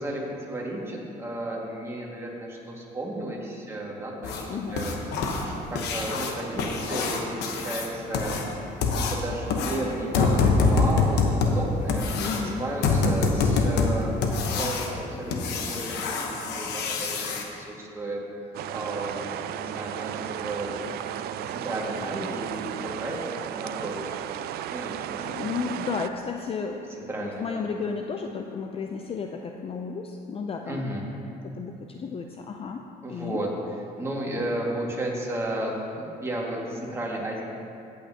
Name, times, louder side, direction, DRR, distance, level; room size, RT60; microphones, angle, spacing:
voice 1, 0.0-4.9 5.4-8.4 8.8-14.1 14.5-18.2 18.7-20.9 21.5-24.2 24.7-25.4 27.1-27.5 30.7-31.0 33.0-33.5 34.0-37.4, right 1 dB, 15° right, -3 dB, 2.0 m, -33 dB
sound 1, 4.2-17.4 19.8-19.9 20.3-20.4 20.9-21.0 21.4-21.5 22.0-22.2 22.5-22.6 23.1-23.2, left 4 dB, 85° left, 1.0 m, -26 dB
voice 2, 4.5-4.8 12.1-12.7 25.2-30.9 31.4-32.8 33.1-33.4, left 5 dB, 35° left, 4 dB, 0.5 m, -33 dB
sound 2, 18.5-26.1, right 11 dB, 70° right, 0.4 m, -34 dB
15.0 x 8.3 x 2.9 m, 2.6 s
cardioid pair, 110°, 17 cm